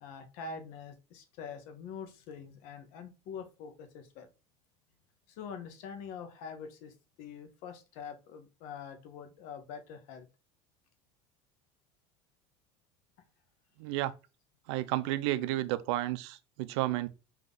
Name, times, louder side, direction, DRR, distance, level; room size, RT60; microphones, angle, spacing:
voice 1, 0.0-4.3 5.3-10.3, left 6 dB, 65° left, 0.9 m, -45 dB
voice 2, 13.8-14.1 14.7-17.1, right 16 dB, 80° right, 0.5 m, -32 dB
3.6 x 2.8 x 3.7 m
supercardioid pair, 130°, 15 cm